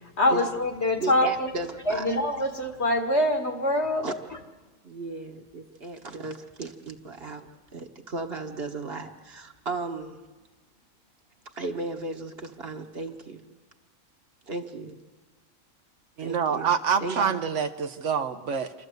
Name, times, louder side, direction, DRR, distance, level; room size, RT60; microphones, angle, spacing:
voice 1, 0.2-1.5 1.9-4.0, left 1 dB, 55° left, 4 dB, 2.1 m, -24 dB
voice 2, 0.9-2.2 4.0-4.1 4.8-10.2 11.5-13.5 14.5-15.0 16.2-16.7 17.0-17.3, right 3 dB, 50° right, 3 dB, 1.6 m, -35 dB
voice 3, 16.2-18.7, right 7 dB, 65° right, 8 dB, 1.2 m, -26 dB
27.0 x 13.0 x 8.0 m, 1.3 s
omnidirectional pair, 1.3 m